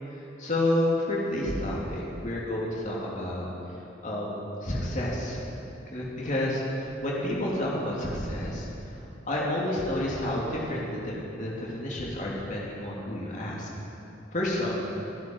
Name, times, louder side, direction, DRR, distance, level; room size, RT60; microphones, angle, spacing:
voice 1, 0.4-3.4 4.0-5.4 5.9-8.6 9.3-13.7 14.3-14.7, left 1 dB, 40° left, -4 dB, 3.2 m, -30 dB
27.0 x 11.0 x 4.8 m, 2.9 s
head